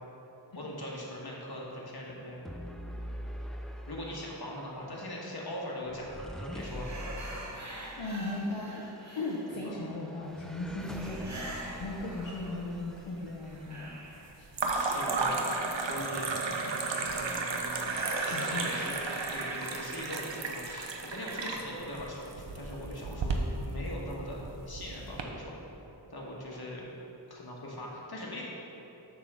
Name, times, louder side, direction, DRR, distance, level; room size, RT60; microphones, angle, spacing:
voice 1, 0.5-2.4 3.9-6.9 9.6-9.7 14.7-15.5 15.8-16.3 17.1-23.4 23.6-25.6 26.1-26.9 27.3-28.5, left 1 dB, 55° left, -3 dB, 1.5 m, -41 dB
sound 1, 2.4-13.7, equal, ahead, 0.5 m, -44 dB
sound 2, 6.6-9.7 10.8-12.8 13.2-21.7, right 1 dB, 40° right, 1.0 m, -44 dB
voice 2, 8.0-8.8 9.1-11.4 11.7-13.9 14.4-14.5 18.3-18.7, left 2 dB, 80° left, -4 dB, 0.8 m, -37 dB
sound 3, 11.4-12.2 12.4-13.1 14.5-25.2, right 3 dB, 75° right, 0.7 m, -34 dB
6.9 x 3.7 x 6.1 m, 3.0 s
wide cardioid pair, 40°, 44 cm